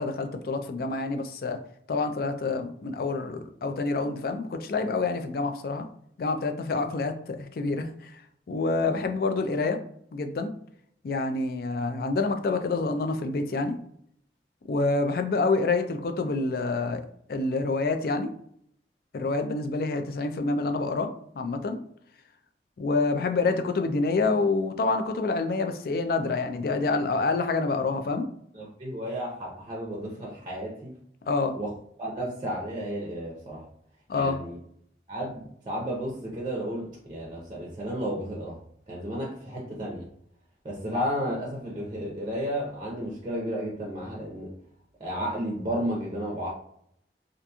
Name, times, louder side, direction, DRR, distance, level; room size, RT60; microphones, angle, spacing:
voice 1, 0.0-1.6 1.9-5.9 6.2-8.1 8.5-9.8 10.1-10.5 11.0-13.8 14.7-17.0 17.3-18.3 19.1-21.1 21.4-21.8 22.8-28.3 31.3-31.6 34.1-34.4, left 3 dB, 55° left, 7 dB, 0.3 m, -27 dB
voice 2, 28.5-30.9 31.6-31.7 32.0-33.6 34.1-34.6 35.1-38.6 38.9-40.1 40.6-44.5 45.0-46.5, equal, 25° right, -3 dB, 0.6 m, -33 dB
2.8 x 2.5 x 2.3 m, 0.67 s
head